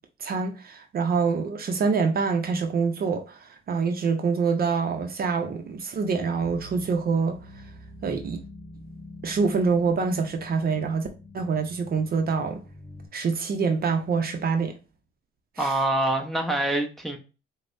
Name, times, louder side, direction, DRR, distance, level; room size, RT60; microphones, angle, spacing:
voice 1, 0.2-7.4 8.0-8.4 9.2-11.1 11.3-12.6 13.1-14.7 15.6-15.8, right 5 dB, 50° right, 0.6 m, -25 dB
sound 1, 6.4-13.1, left 1 dB, 15° left, 1.8 m, -45 dB
voice 2, 15.6-17.2, right 1 dB, ahead, 0.8 m, -25 dB
5.0 x 2.1 x 2.5 m
cardioid pair, 90°, 20 cm